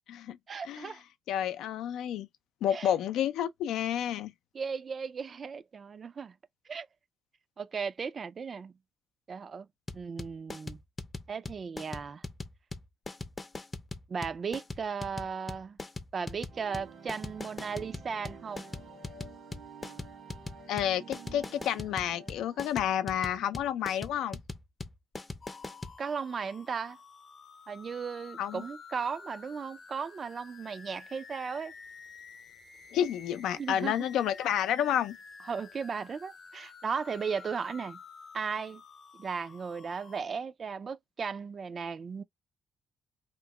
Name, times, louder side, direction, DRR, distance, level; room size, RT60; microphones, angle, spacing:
voice 1, 0.5-1.0 2.7-2.9 4.5-6.3 6.7-6.9 7.6-8.7 9.3-9.7 9.9-10.8 11.3-12.2 14.1-15.8 16.1-18.6 26.0-27.0 27.7-31.7 33.6-34.0 35.5-38.0 38.3-38.8 39.2-42.2, right 6 dB, 45° right, 0.3 m, -36 dB
voice 2, 1.3-2.3 2.6-4.3 20.7-24.4 28.4-28.6 32.9-35.2, left 10 dB, 85° left, 0.4 m, -30 dB
sound 1, 9.9-26.0, left 2 dB, 20° left, 0.5 m, -41 dB
sound 2, 16.5-23.4, right 5 dB, 75° right, 1.4 m, -51 dB
sound 3, 25.4-40.2, left 5 dB, 55° left, 0.7 m, -51 dB
2.9 x 2.0 x 3.4 m
cardioid pair, 90°, 0 cm